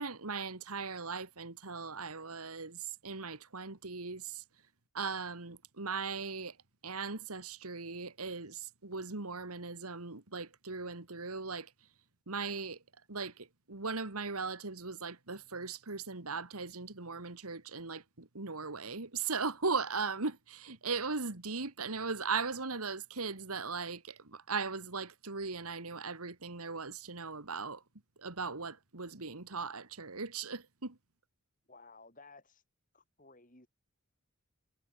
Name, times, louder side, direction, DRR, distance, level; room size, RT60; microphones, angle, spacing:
voice 1, 0.0-4.4 4.9-6.6 6.8-11.7 12.3-12.8 13.1-27.8 28.2-31.0, right 4 dB, 80° right, 2.2 m, -38 dB
voice 2, 31.7-32.6 32.9-33.7, left 3 dB, 35° left, 4.7 m, -56 dB
head